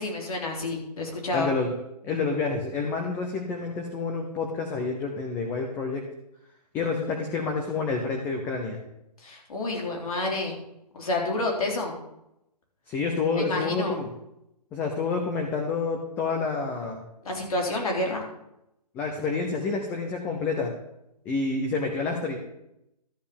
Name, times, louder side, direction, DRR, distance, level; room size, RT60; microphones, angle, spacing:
voice 1, 0.0-1.5 9.2-10.6 10.9-11.9 13.4-14.0 17.2-18.2, left 2 dB, 60° left, 0 dB, 3.6 m, -29 dB
voice 2, 1.3-1.7 2.0-6.0 6.7-8.8 12.9-14.1 14.7-17.0 18.9-20.7 21.3-22.4, left 4 dB, 10° left, 2 dB, 0.6 m, -28 dB
12.5 x 5.0 x 6.9 m, 0.83 s
hypercardioid pair, 160°, 21 cm